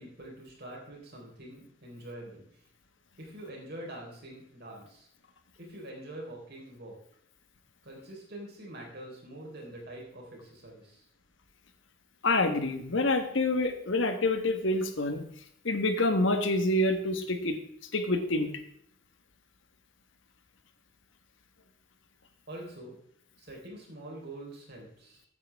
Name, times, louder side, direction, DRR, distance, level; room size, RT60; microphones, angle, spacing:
voice 1, 0.0-2.5 3.2-5.1 5.6-6.9 7.8-11.1 22.5-23.0 23.4-25.2, right 1 dB, 50° right, -1 dB, 4.0 m, -45 dB
voice 2, 12.2-15.2 15.6-17.6 17.9-18.5, left 2 dB, 60° left, 7 dB, 1.3 m, -27 dB
14.5 x 9.3 x 3.5 m, 0.67 s
head